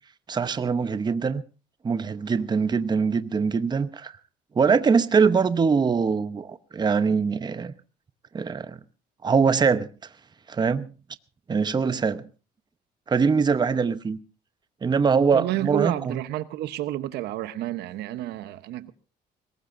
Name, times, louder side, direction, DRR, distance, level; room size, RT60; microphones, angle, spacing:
voice 1, 0.3-1.4 1.8-4.1 4.5-7.7 8.3-8.8 9.2-9.9 10.5-10.9 11.5-12.3 13.1-14.2 14.8-16.2, right 5 dB, 25° right, 0.9 m, -23 dB
voice 2, 15.3-18.9, right 14 dB, 80° right, 1.0 m, -30 dB
21.5 x 18.5 x 2.6 m
cardioid pair, 110°, 17 cm